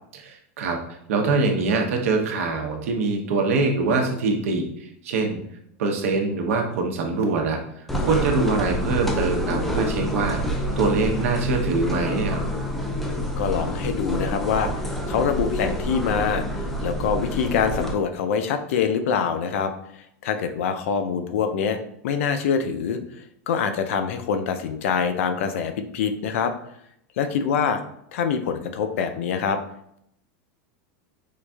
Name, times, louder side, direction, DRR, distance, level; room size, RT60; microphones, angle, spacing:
voice 1, 0.2-0.8 1.1-5.4 5.8-7.6 8.0-10.4 10.8-12.4, right 3 dB, 80° right, 2 dB, 0.8 m, -23 dB
sound 1, 7.9-17.9, equal, 5° left, 0.3 m, -27 dB
voice 2, 13.4-14.7 15.1-19.7 20.2-21.8 22.0-23.0 23.5-26.5 27.2-27.8 28.1-29.6, left 6 dB, 70° left, 8 dB, 0.4 m, -24 dB
4.6 x 2.5 x 2.3 m, 0.73 s
supercardioid pair, 170°, 7 cm